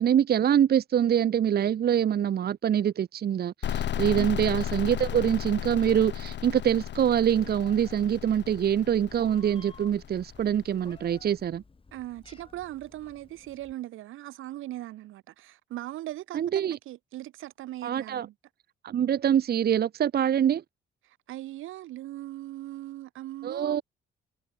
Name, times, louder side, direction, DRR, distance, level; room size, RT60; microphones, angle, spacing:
voice 1, 0.0-11.6 16.3-16.8 17.8-18.3 18.8-20.6 23.4-23.8, right 9 dB, 50° right, 0.9 m, -25 dB
sound 1, 3.6-11.2, left 10 dB, 65° left, 2.0 m, -35 dB
Meow, 7.4-13.7, left 4 dB, 25° left, 5.7 m, -54 dB
voice 2, 11.9-18.3 21.1-23.8, right 15 dB, 85° right, 2.3 m, -39 dB
cardioid pair, 90°, 20 cm